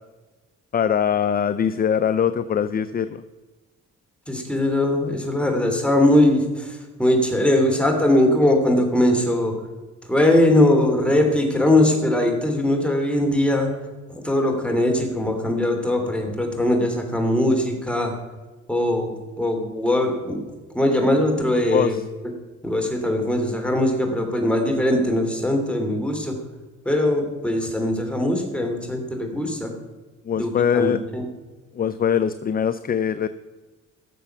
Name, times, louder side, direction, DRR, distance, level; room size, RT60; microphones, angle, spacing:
voice 1, 0.7-3.2 21.7-22.0 30.3-31.0 31.7-33.3, left 8 dB, 30° left, 13 dB, 0.5 m, -22 dB
voice 2, 4.3-9.5 10.1-13.7 14.1-18.1 18.7-20.4 20.7-22.0 22.6-26.4 26.8-29.7 30.4-31.2, left 1 dB, 5° left, 3 dB, 2.9 m, -21 dB
16.0 x 6.9 x 5.8 m, 1.3 s
cardioid pair, 90°, 30 cm